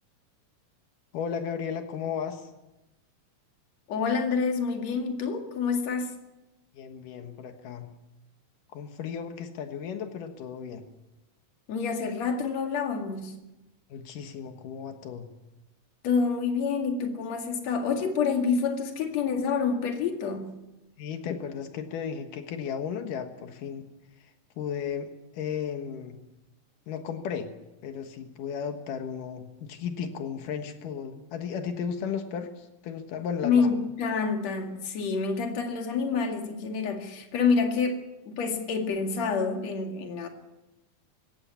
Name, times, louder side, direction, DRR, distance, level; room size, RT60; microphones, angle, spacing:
voice 1, 1.1-2.5 6.7-8.0 8.7-10.8 13.9-15.3 21.0-23.9 24.6-26.2 26.9-27.5 27.8-33.6, left 7 dB, 90° left, 6 dB, 3.1 m, -35 dB
voice 2, 3.9-6.2 11.7-13.4 16.0-20.5 33.4-40.3, left 5 dB, 60° left, 3 dB, 3.2 m, -27 dB
21.0 x 17.0 x 8.3 m, 0.99 s
omnidirectional pair, 3.6 m